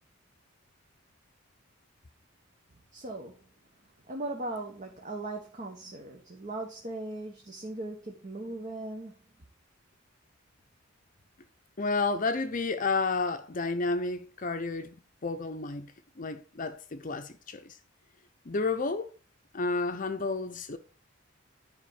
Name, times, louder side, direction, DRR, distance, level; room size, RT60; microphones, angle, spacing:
voice 1, 2.9-3.4 4.1-9.1, right 2 dB, 40° right, 1.2 m, -38 dB
voice 2, 11.8-15.0 15.2-17.8 18.5-19.1 19.5-20.8, left 3 dB, 40° left, 0.7 m, -31 dB
10.5 x 5.1 x 4.8 m
head